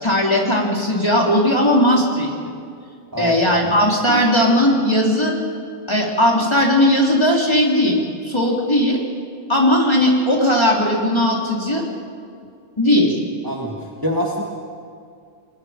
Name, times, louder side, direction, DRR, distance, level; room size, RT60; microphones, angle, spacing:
voice 1, 0.0-2.3 3.2-5.3 5.9-9.0 9.5-11.8 12.8-13.2, left 1 dB, 10° left, -2 dB, 3.3 m, -17 dB
voice 2, 13.4-14.4, equal, 10° right, -2 dB, 1.1 m, -25 dB
29.5 x 20.5 x 5.2 m, 2.3 s
omnidirectional pair, 3.7 m